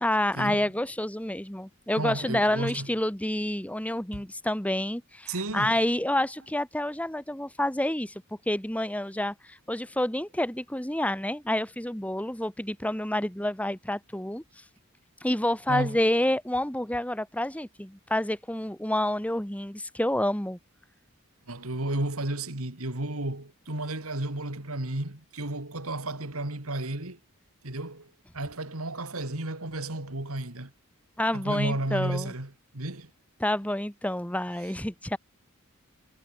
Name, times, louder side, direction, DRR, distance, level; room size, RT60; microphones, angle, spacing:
voice 1, 0.0-8.1 8.5-14.4 15.2-20.6 31.2-32.3 33.4-35.2, left 1 dB, 5° left, 1.5 m, -28 dB
voice 2, 2.0-2.9 4.1-4.2 5.3-5.8 15.7-16.0 21.5-27.2 27.6-30.7 31.3-33.1, right 1 dB, 75° right, 3.1 m, -33 dB
head